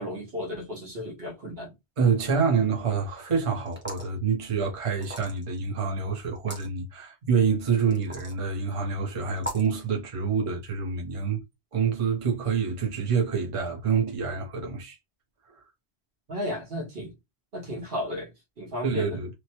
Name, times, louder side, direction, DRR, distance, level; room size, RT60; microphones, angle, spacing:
voice 1, 0.0-1.7 16.3-17.1 17.5-19.2, left 1 dB, 65° right, 1.3 m, -34 dB
voice 2, 2.0-11.4 11.7-15.0 18.8-19.3, right 6 dB, 35° right, 0.7 m, -27 dB
sound 1, 3.7-4.1 5.0-5.6 6.3-6.7 7.9-8.4 9.4-9.7, equal, 10° right, 0.9 m, -37 dB
3.1 x 2.1 x 2.8 m
omnidirectional pair, 1.1 m